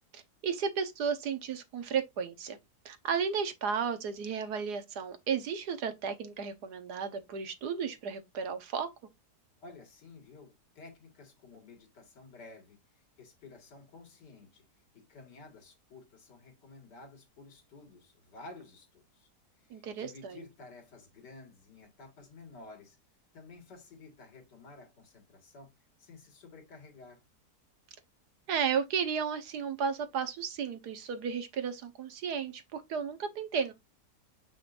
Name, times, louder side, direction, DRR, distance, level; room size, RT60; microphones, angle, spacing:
voice 1, 0.1-2.6 2.8-8.9 19.7-20.4 28.5-33.7, right 6 dB, 75° right, 1.6 m, -33 dB
voice 2, 9.6-14.6 14.9-19.3 19.6-23.0 23.3-25.7 26.0-27.2, left 3 dB, 90° left, 2.5 m, -52 dB
6.8 x 5.7 x 2.6 m
omnidirectional pair, 1.8 m